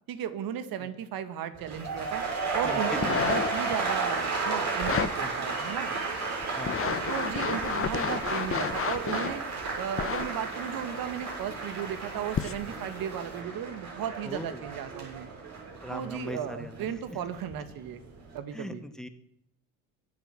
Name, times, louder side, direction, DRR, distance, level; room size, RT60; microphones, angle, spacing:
voice 1, 0.1-2.2 2.5-5.9 6.8-9.4 9.8-15.3 15.9-18.0 18.3-18.8, right 9 dB, 55° right, 10 dB, 2.1 m, -35 dB
sound 1, 1.6-17.6 17.9-18.4, right 3 dB, 40° right, 7.1 m, -33 dB
sound 2, 2.9-3.7 4.8-5.1 5.7-5.8 6.4-9.4 10.0-10.3 11.2-11.3 12.3-12.7 13.3-13.4, left 8 dB, 30° left, 1.1 m, -31 dB
voice 2, 6.5-6.9 14.2-14.6 15.8-16.9 18.5-19.1, equal, ahead, 8 dB, 2.0 m, -39 dB
23.0 x 8.0 x 6.1 m, 0.74 s
hypercardioid pair, 70°, 41 cm